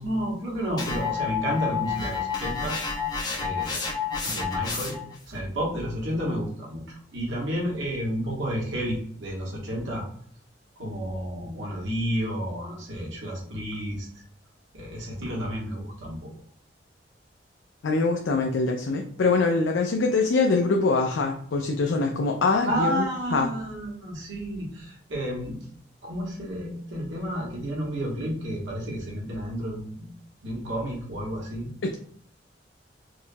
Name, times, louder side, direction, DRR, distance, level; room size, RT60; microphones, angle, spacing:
voice 1, 0.0-2.8 3.4-3.8 4.2-5.0 5.3-10.0 10.8-14.1 14.7-16.3 22.7-25.6 26.0-30.1 30.4-31.7, equal, 90° right, -3 dB, 1.4 m, -31 dB
sound 1, 0.8-5.2, left 6 dB, 25° left, 0.6 m, -30 dB
voice 2, 17.8-23.5 31.8-31.9, left 3 dB, 85° left, 3 dB, 0.4 m, -24 dB
4.7 x 2.3 x 2.6 m, 0.62 s
head